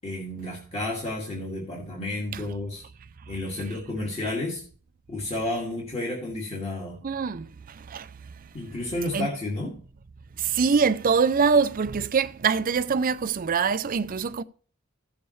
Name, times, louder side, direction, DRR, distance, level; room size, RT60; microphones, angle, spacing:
voice 1, 0.0-2.8 3.3-4.6 5.1-7.0 8.5-9.8, left 1 dB, 30° left, 2.3 m, -31 dB
voice 2, 7.0-7.5 7.8-8.1 9.1-9.3 10.4-14.4, right 5 dB, 40° right, 0.5 m, -24 dB
16.0 x 7.0 x 3.2 m
head